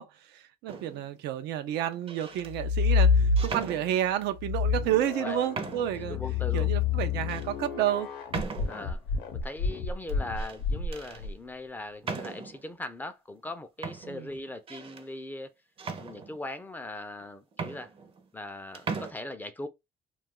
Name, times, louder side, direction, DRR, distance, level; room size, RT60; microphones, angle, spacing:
voice 1, 0.0-6.2 6.5-8.1 14.0-14.3, right 12 dB, 85° right, 0.5 m, -30 dB
sound 1, 0.7-1.1 1.9-2.5 3.4-4.3 5.0-5.1 5.5-6.1 6.6-6.7 7.3-7.5 8.3-9.0 10.1-10.6 10.9-11.2 12.0-12.7 13.4-13.5 13.8-15.1 15.8-16.6 17.2-17.3 17.5-18.5 18.7-19.1, right 4 dB, 35° right, 0.5 m, -38 dB
sound 2, 2.5-3.9 4.4-11.3, left 5 dB, 80° left, 0.7 m, -28 dB
voice 2, 6.1-6.7 8.7-9.0 9.3-15.5 16.0-17.9 18.3-19.7, left 2 dB, 10° left, 0.5 m, -40 dB
2.4 x 2.3 x 3.5 m
cardioid pair, 110°, 17 cm